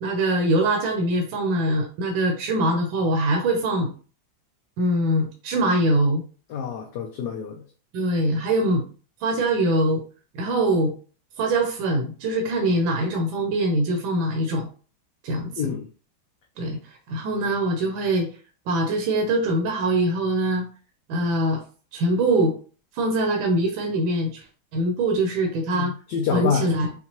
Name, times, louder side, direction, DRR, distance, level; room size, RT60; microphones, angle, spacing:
voice 1, 0.0-3.9 4.8-6.2 7.9-8.9 9.2-10.0 10.3-10.9 11.4-14.7 15.2-15.7 16.6-16.8 17.1-18.3 18.7-20.7 21.1-21.6 21.9-22.5 22.9-24.4 24.7-25.9 26.3-26.9, right 1 dB, 75° right, 2 dB, 1.4 m, -23 dB
voice 2, 6.5-7.6 15.6-15.9 25.7-26.7, left 7 dB, 70° left, 2 dB, 1.1 m, -27 dB
5.7 x 2.3 x 2.9 m, 0.39 s
omnidirectional pair, 2.2 m